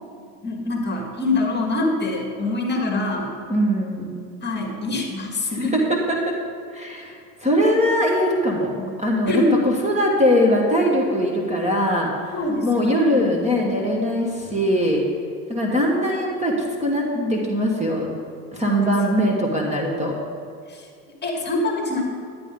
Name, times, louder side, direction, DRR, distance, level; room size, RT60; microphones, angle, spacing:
voice 1, 0.4-3.3 4.4-5.8 8.7-8.9 9.3-9.6 12.3-13.3 17.1-17.4 18.6-19.0 20.7-20.8 21.2-22.0, left 2 dB, 20° left, 2 dB, 1.8 m, -25 dB
voice 2, 3.5-4.2 5.7-6.2 6.7-7.1 7.4-8.7 9.0-15.0 15.5-18.1 18.5-20.1, equal, 15° right, -1 dB, 1.5 m, -21 dB
10.5 x 10.0 x 3.8 m, 2.3 s
hypercardioid pair, 100°, 48 cm